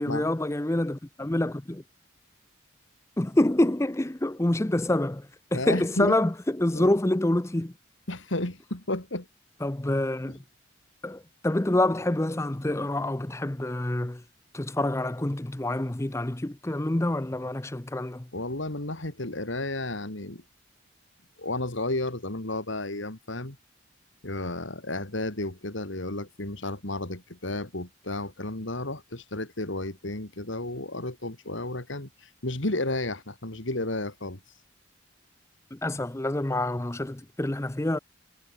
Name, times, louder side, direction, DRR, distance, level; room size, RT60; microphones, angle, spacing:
voice 1, 0.0-1.8 3.2-7.7 9.6-10.4 11.0-14.2 14.5-18.3 35.7-38.0, left 1 dB, 15° left, 0.6 m, -27 dB
voice 2, 5.5-6.1 6.7-6.9 8.1-9.3 18.3-20.4 21.4-23.6 24.2-34.4, left 2 dB, 70° left, 3.1 m, -32 dB
head